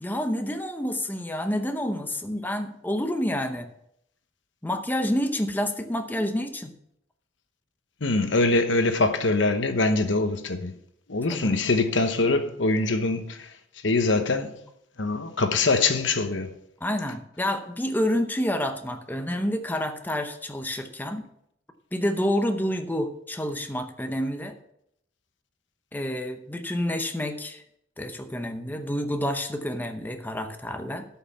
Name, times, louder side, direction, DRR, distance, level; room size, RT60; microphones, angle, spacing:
voice 1, 0.0-3.7 4.6-6.7 11.3-11.6 16.8-21.2 21.9-24.6 25.9-27.6 28.0-31.1, left 1 dB, 10° left, 0.8 m, -28 dB
voice 2, 8.0-10.7 11.1-13.4 13.8-14.5 15.0-16.5, left 3 dB, 75° left, 1.0 m, -23 dB
12.5 x 5.7 x 5.7 m
head